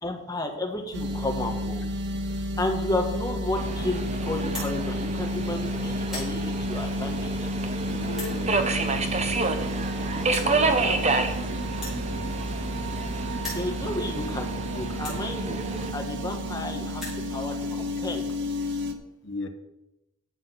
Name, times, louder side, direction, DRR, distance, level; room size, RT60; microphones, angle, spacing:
voice 1, 0.0-1.8 2.6-7.3 10.4-11.0 13.5-15.6 15.9-18.3, left 1 dB, 15° left, 2 dB, 1.4 m, -32 dB
sound 1, 0.9-18.9, equal, 55° right, 1.0 m, -31 dB
Subway metro underground, 3.5-15.9, right 3 dB, 30° right, 0.8 m, -30 dB
sound 2, 4.5-4.7 5.4-5.6 5.9-6.3 7.1-7.2 8.1-8.4 9.4-9.5 9.7-9.8 10.3-10.5 11.7-13.0 13.3-13.7 14.4-14.5 15.0-15.2 16.1-16.2 16.5-16.6 16.8-17.2, left 2 dB, ahead, 4.9 m, -38 dB
voice 2, 7.8-9.1 10.1-10.2 19.2-19.5, left 2 dB, 60° left, 7 dB, 1.1 m, -37 dB
10.5 x 7.7 x 5.8 m, 0.93 s
head